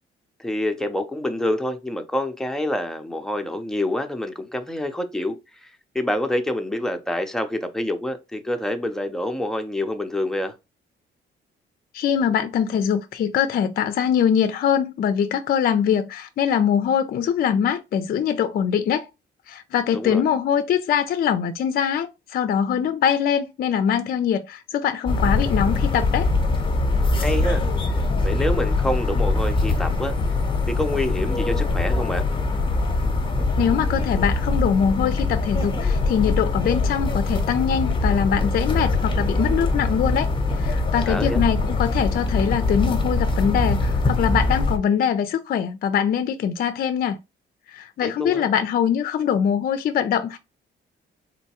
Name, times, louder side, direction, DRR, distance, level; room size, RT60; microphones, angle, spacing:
voice 1, 0.4-5.4 5.6-5.7 5.9-10.5 19.9-20.2 27.2-27.6 28.2-30.1 30.7-32.3 41.1-41.4 48.0-48.4, left 1 dB, ahead, 0.6 m, -27 dB
voice 2, 11.9-19.1 19.5-26.3 33.6-47.2 47.7-50.4, left 8 dB, 50° left, 0.4 m, -23 dB
sound 1, 25.1-44.8, left 3 dB, 25° left, 0.9 m, -22 dB
3.9 x 2.2 x 2.8 m
cardioid pair, 90°, 20 cm